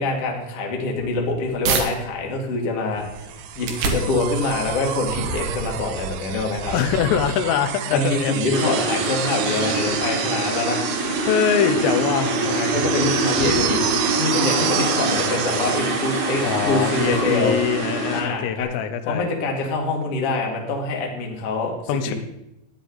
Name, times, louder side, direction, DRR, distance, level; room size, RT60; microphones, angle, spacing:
voice 1, 0.0-3.1 3.6-6.7 7.9-10.8 12.1-17.5 18.1-18.7 19.0-21.7 22.1-22.2, left 3 dB, 55° left, 0 dB, 1.7 m, -25 dB
sound 1, 0.9-1.9 2.4-7.7, right 5 dB, 65° right, 2.9 m, -31 dB
sound 2, 3.1-17.2 18.6-18.7, right 10 dB, 80° right, 3.1 m, -30 dB
voice 2, 6.7-8.8 11.3-12.3 16.4-19.3 21.9-22.1, left 8 dB, 85° left, 8 dB, 3.4 m, -23 dB
sound 3, 8.5-18.2, right 2 dB, 45° right, 2.5 m, -24 dB
12.5 x 10.0 x 4.0 m, 0.86 s
omnidirectional pair, 5.8 m